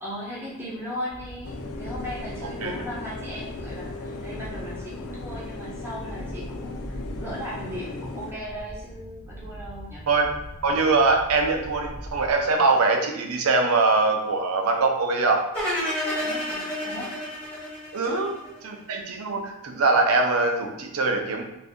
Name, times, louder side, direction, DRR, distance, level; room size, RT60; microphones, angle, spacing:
voice 1, 0.0-10.0 16.2-17.2 18.0-18.3, equal, 10° right, -7 dB, 0.7 m, -37 dB
sound 1, 1.1-12.6, equal, 45° left, 0.8 m, -41 dB
sound 2, 1.4-8.3, left 3 dB, 75° left, 0.3 m, -37 dB
voice 2, 10.6-15.4 17.9-18.3 18.6-21.5, right 3 dB, 80° right, 3 dB, 0.5 m, -22 dB
sound 3, 15.5-18.7, equal, 5° left, 1.2 m, -30 dB
2.6 x 2.5 x 3.5 m, 0.90 s
head